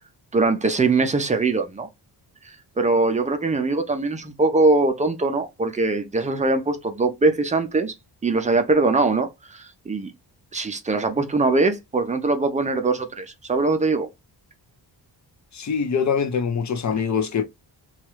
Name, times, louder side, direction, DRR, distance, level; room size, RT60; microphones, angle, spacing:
voice 1, 0.3-1.9 2.4-7.9 8.2-10.1 10.5-14.1, right 3 dB, 20° right, 0.3 m, -22 dB
voice 2, 15.5-17.4, left 6 dB, 45° left, 0.5 m, -23 dB
2.9 x 2.3 x 2.9 m
wide cardioid pair, 175°, 43 cm